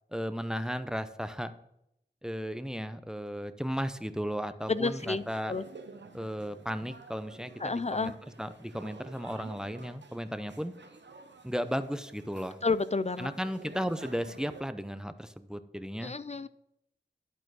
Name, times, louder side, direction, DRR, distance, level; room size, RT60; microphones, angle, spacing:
voice 1, 0.1-1.5 2.2-5.5 6.1-10.7 11.4-12.6 13.2-16.1, equal, 5° right, 11 dB, 0.6 m, -35 dB
sound 1, 4.6-14.6, right 4 dB, 90° right, 0.8 m, -51 dB
voice 2, 4.7-5.6 7.6-8.1 12.6-13.3 16.0-16.5, left 3 dB, 40° left, 15 dB, 0.4 m, -30 dB
11.0 x 4.4 x 6.2 m, 0.79 s
wide cardioid pair, 40°, 18 cm